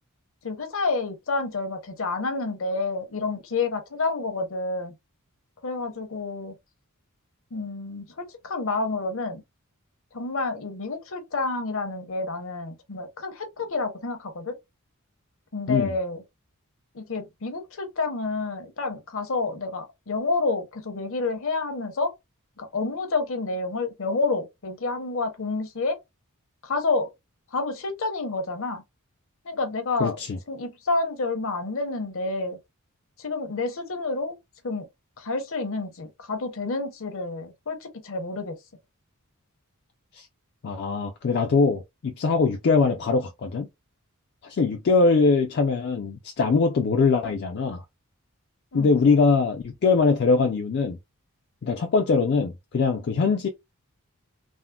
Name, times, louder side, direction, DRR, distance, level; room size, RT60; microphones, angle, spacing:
voice 1, 0.4-4.9 5.6-6.5 7.5-9.4 10.1-14.6 15.5-16.2 16.9-22.1 22.6-26.0 26.6-27.1 27.5-28.8 29.4-30.2 30.5-32.6 33.2-34.4 34.6-34.9 35.2-38.6 48.7-48.9, left 3 dB, 65° left, 0.8 m, -29 dB
voice 2, 30.0-30.4 40.1-40.3 40.6-43.7 44.4-47.8 48.7-51.0 51.6-53.5, left 4 dB, 50° left, 0.4 m, -22 dB
3.6 x 2.0 x 2.2 m
head